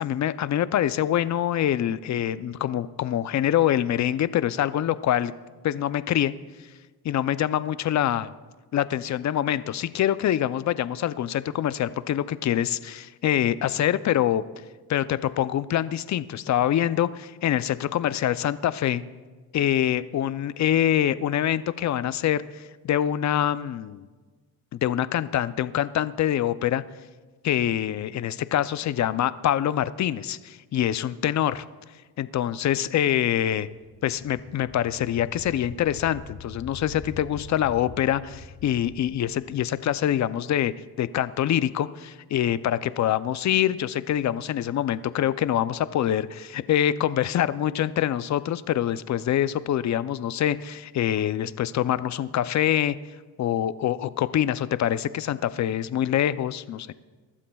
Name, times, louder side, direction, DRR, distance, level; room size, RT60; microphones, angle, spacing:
voice 1, 0.0-5.3 5.6-6.3 7.0-8.3 8.7-14.4 14.9-19.0 19.5-24.0 24.8-26.8 27.4-31.6 32.2-33.7 34.0-53.0 53.4-56.9, left 11 dB, 45° left, 15 dB, 0.5 m, -25 dB
sound 1, 33.8-40.4, left 3 dB, 80° left, 1.8 m, -44 dB
23.0 x 12.5 x 2.3 m, 1.4 s
cardioid pair, 115°, 42 cm